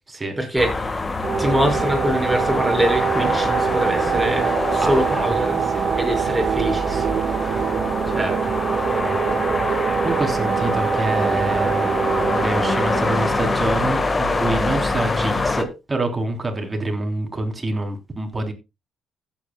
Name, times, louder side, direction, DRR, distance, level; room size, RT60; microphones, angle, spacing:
voice 1, 0.4-1.0 1.4-4.5 4.7-5.6 6.0-7.2 8.1-8.4 8.9-9.4, equal, 10° right, 5.9 m, -24 dB
sound 1, 0.6-15.6, left 3 dB, 25° left, 1.6 m, -25 dB
sound 2, 1.2-14.8, right 7 dB, 60° right, 1.6 m, -24 dB
voice 2, 4.8-5.2 5.7-5.9 10.0-11.8 12.3-18.5, right 2 dB, 25° right, 3.7 m, -26 dB
16.0 x 9.0 x 2.3 m
cardioid pair, 90°, 0 cm